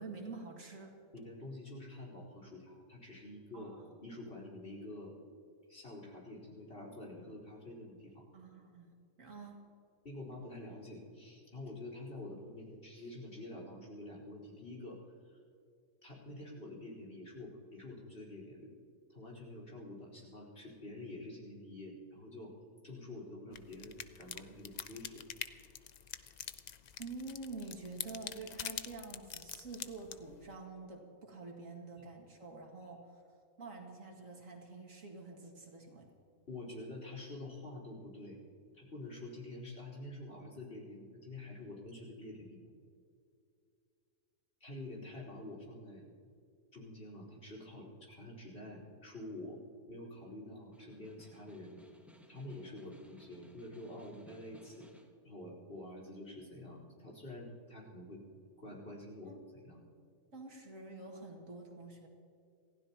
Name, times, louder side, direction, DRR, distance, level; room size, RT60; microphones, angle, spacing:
voice 1, 0.0-0.9 3.5-3.9 8.3-9.6 27.0-33.2 33.6-36.1 59.2-59.4 60.3-62.1, right 3 dB, 65° right, 0 dB, 2.4 m, -48 dB
voice 2, 1.1-5.1 5.7-8.3 10.0-15.0 15.3-15.4 16.0-18.7 19.1-22.5 22.8-25.2 36.5-38.4 38.7-42.6 44.6-46.0 46.7-49.6 49.9-51.8 52.3-54.9 55.2-58.2 58.6-59.3 59.6-59.8, left 1 dB, 45° left, -2 dB, 4.4 m, -48 dB
sound 1, 23.5-30.6, left 8 dB, 75° left, 0.3 m, -46 dB
Snare drum, 50.6-55.2, left 1 dB, ahead, 1.1 m, -61 dB
28.0 x 16.0 x 2.9 m, 2.4 s
omnidirectional pair, 1.5 m